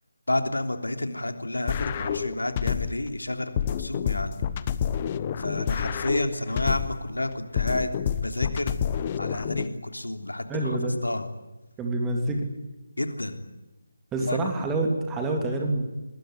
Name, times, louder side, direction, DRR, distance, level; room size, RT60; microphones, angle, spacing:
voice 1, 0.3-4.4 5.4-7.9 8.2-8.8 9.2-10.8 11.0-11.2 13.0-13.4 14.2-14.4, left 1 dB, 70° left, 7 dB, 3.4 m, -30 dB
sound 1, 1.7-3.1 3.6-7.1 7.6-9.7, left 8 dB, 25° left, 1.0 m, -28 dB
voice 2, 10.5-10.9 11.8-12.5 14.1-15.8, right 2 dB, 10° right, 3 dB, 3.2 m, -27 dB
25.5 x 21.0 x 9.8 m, 1.1 s
figure-of-eight pair, 155°, 0 cm